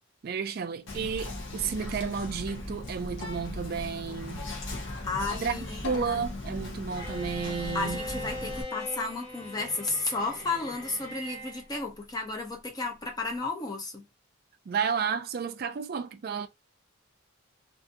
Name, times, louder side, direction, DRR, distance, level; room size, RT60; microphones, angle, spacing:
voice 1, 0.2-4.5 5.3-5.6 5.8-8.0 14.7-16.5, right 6 dB, 45° right, 0.3 m, -32 dB
Whispering, 0.9-8.6, left 2 dB, 60° left, 0.8 m, -38 dB
voice 2, 5.0-6.3 7.7-14.0, left 3 dB, 20° left, 0.6 m, -33 dB
Bowed string instrument, 7.0-11.7, left 1 dB, 40° left, 1.2 m, -40 dB
2.5 x 2.5 x 2.5 m
head